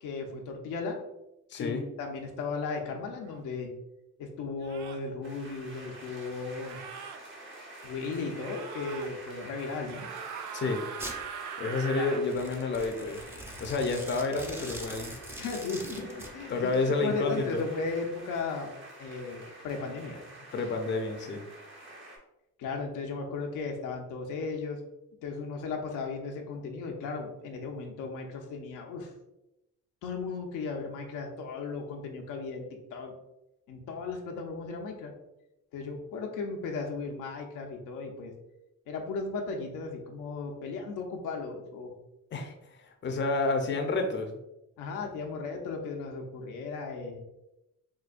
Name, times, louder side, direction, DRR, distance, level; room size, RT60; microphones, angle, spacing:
voice 1, 0.0-1.0 1.6-3.7 4.2-6.8 7.8-10.1 11.9-12.1 15.4-18.7 19.0-20.2 22.6-24.8 25.2-29.1 30.0-33.1 33.7-35.1 35.7-38.3 38.9-41.9 44.8-47.2, left 4 dB, 90° left, 2 dB, 0.7 m, -36 dB
voice 2, 1.5-1.8 10.5-10.8 11.6-13.2 13.6-15.1 16.5-17.6 20.5-21.4 42.3-44.4, left 3 dB, 40° left, 4 dB, 0.6 m, -30 dB
sound 1, 3.2-3.4 4.6-5.1 6.5-7.2 8.4-9.1 9.9-12.3, right 7 dB, 70° right, 0.5 m, -41 dB
sound 2, 5.2-22.2, right 1 dB, 40° right, 1.0 m, -48 dB
Domestic sounds home sounds, 11.0-11.2 12.2-16.3, equal, 10° right, 0.6 m, -42 dB
4.7 x 2.3 x 2.4 m, 0.91 s
cardioid pair, 90°, 30 cm